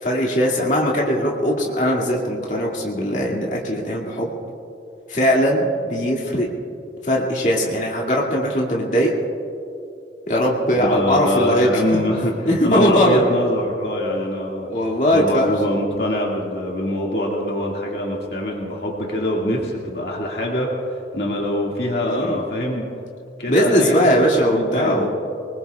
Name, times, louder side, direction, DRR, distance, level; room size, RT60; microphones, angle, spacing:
voice 1, 0.0-4.3 5.1-6.5 7.0-9.1 10.3-12.0 12.5-13.3 14.7-15.5 22.1-22.4 23.5-25.1, equal, 40° left, -3 dB, 2.2 m, -19 dB
voice 2, 10.9-12.3 12.6-14.7 15.1-20.7 21.1-22.8 23.4-24.0 24.5-25.1, left 1 dB, 60° left, -3 dB, 2.1 m, -24 dB
26.5 x 20.5 x 2.4 m, 2.6 s
head